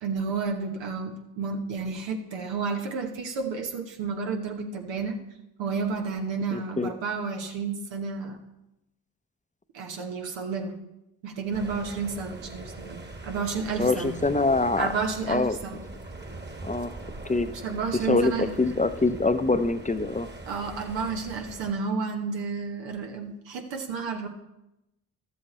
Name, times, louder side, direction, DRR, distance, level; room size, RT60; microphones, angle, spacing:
voice 1, 0.0-5.2 5.6-8.4 9.7-10.8 11.2-14.1 14.8-15.8 17.6-18.5 20.5-24.3, right 4 dB, 90° right, 3 dB, 1.2 m, -31 dB
voice 2, 6.5-6.9 13.8-14.9 15.3-15.6 16.6-17.0 17.2-17.5 18.1-18.3 18.6-20.3, left 3 dB, 20° left, 11 dB, 0.6 m, -24 dB
sound 1, 11.5-21.7, right 2 dB, 25° right, 1.3 m, -42 dB
12.0 x 7.4 x 4.2 m, 0.89 s
supercardioid pair, 45°, 43 cm